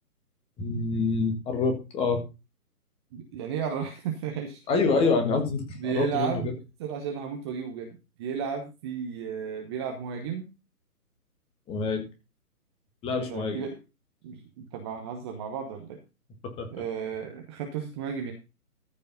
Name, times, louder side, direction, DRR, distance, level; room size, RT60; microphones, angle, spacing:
voice 1, 0.6-2.2 4.7-6.5 11.7-12.1 13.0-13.6 16.6-16.7, left 4 dB, 10° left, 5 dB, 1.6 m, -26 dB
voice 2, 3.1-4.6 5.8-6.5 6.8-10.5 13.2-13.8 14.2-16.0 16.7-18.3, right 7 dB, 15° right, 3 dB, 1.0 m, -33 dB
14.0 x 5.3 x 5.5 m, 0.28 s
figure-of-eight pair, 140°, 46 cm